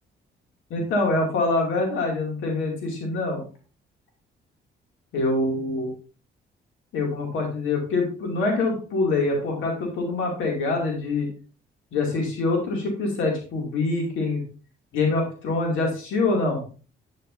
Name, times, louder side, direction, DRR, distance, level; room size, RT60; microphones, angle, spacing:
voice 1, 0.7-3.4 5.1-5.9 6.9-11.3 11.9-14.4 14.9-16.6, left 3 dB, 85° left, 0 dB, 2.5 m, -25 dB
9.3 x 7.9 x 2.7 m, 0.37 s
cardioid pair, 90°, 20 cm